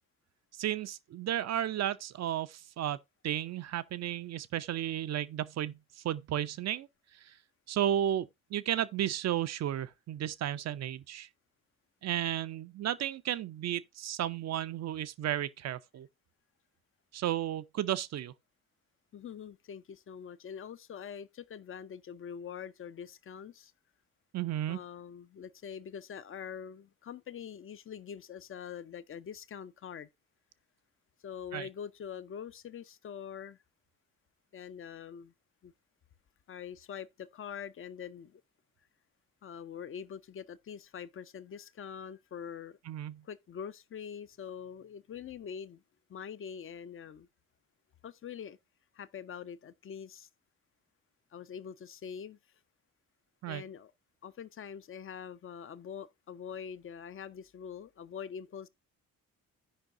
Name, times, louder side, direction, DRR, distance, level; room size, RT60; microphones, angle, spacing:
voice 1, 0.6-3.0 3.2-5.8 6.0-6.9 7.2-7.3 7.7-11.3 12.0-16.1 17.1-18.3 24.3-24.8 31.5-31.7 42.9-43.2 53.4-53.6, right 11 dB, 40° right, 0.6 m, -33 dB
voice 2, 19.1-23.7 24.7-30.1 31.2-33.6 34.5-35.3 35.6-35.7 36.5-38.4 39.4-42.8 43.2-45.8 46.1-47.3 48.0-48.6 48.9-50.3 51.3-52.4 53.5-53.9 54.2-58.7, left 7 dB, 30° left, 0.6 m, -44 dB
15.5 x 5.3 x 2.5 m
figure-of-eight pair, 45°, 42 cm